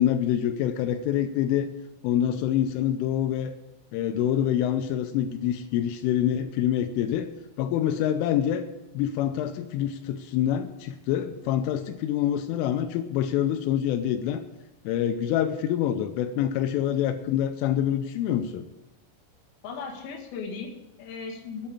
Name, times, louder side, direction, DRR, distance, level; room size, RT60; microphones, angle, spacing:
voice 1, 0.0-1.7 2.0-3.5 3.9-7.3 7.6-8.6 8.9-14.4 14.9-18.6, left 10 dB, 85° left, 8 dB, 3.1 m, -26 dB
voice 2, 19.6-21.7, left 5 dB, 60° left, 0 dB, 3.1 m, -37 dB
8.8 x 8.6 x 8.5 m, 1.0 s
omnidirectional pair, 5.7 m